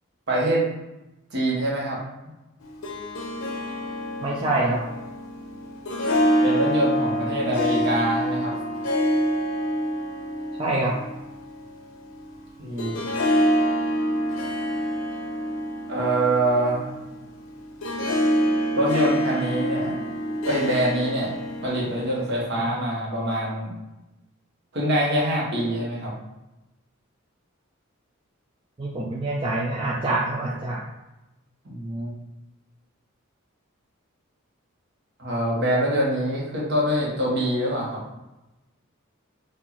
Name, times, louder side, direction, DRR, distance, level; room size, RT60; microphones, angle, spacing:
voice 1, 0.3-0.6 1.3-2.0 6.4-8.5 12.6-13.0 15.9-16.9 18.7-19.9 20.4-21.3 21.6-23.7 24.7-26.1 31.6-32.1 35.2-38.0, right 1 dB, 55° right, -4 dB, 1.5 m, -24 dB
Harp, 2.6-22.4, equal, 80° left, 0.7 m, -27 dB
voice 2, 4.2-4.8 10.6-11.0 22.6-22.7 28.8-30.8, right 2 dB, 25° right, -5 dB, 0.5 m, -25 dB
4.5 x 2.8 x 4.0 m, 0.98 s
head